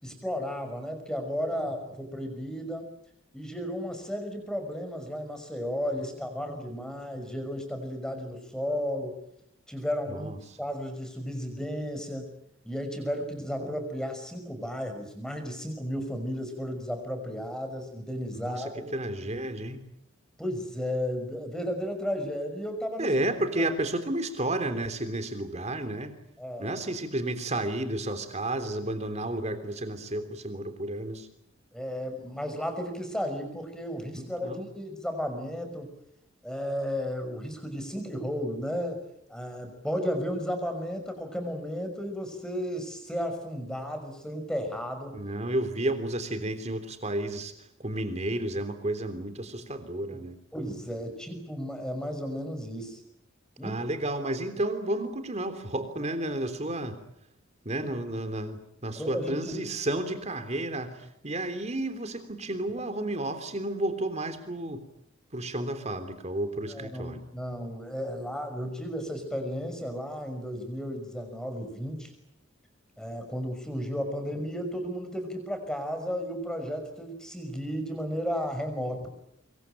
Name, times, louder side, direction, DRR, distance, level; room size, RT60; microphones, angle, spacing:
voice 1, 0.0-2.9 3.3-9.2 9.7-10.3 10.6-12.3 12.6-18.9 20.4-23.1 26.4-26.8 31.7-35.9 36.4-39.0 39.3-45.2 50.1-50.2 50.5-53.0 53.6-53.8 59.0-59.6 66.7-72.1 73.0-79.1, equal, 5° left, 6 dB, 5.7 m, -34 dB
voice 2, 10.1-10.6 18.3-19.8 23.0-26.1 26.6-31.3 34.2-34.7 45.1-50.4 53.6-57.0 57.6-64.8 65.3-67.2, right 1 dB, 35° right, 9 dB, 3.4 m, -32 dB
25.5 x 23.0 x 9.0 m, 0.77 s
head